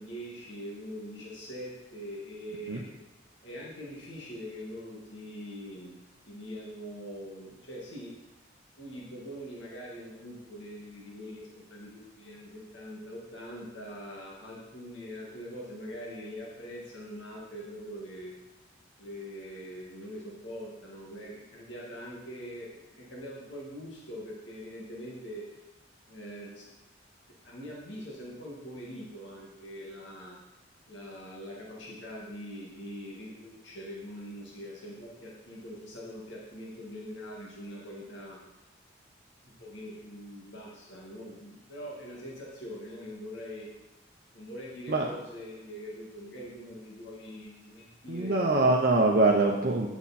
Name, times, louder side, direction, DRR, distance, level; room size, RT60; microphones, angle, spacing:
voice 1, 0.0-2.9 3.4-6.0 6.3-8.1 8.8-18.3 19.0-25.5 26.1-26.7 27.4-30.4 30.9-38.4 39.4-43.7 44.3-48.8, equal, 80° left, -4 dB, 2.1 m, -43 dB
voice 2, 48.1-49.9, right 2 dB, 55° right, -1 dB, 0.8 m, -23 dB
9.6 x 7.1 x 4.3 m, 1.0 s
head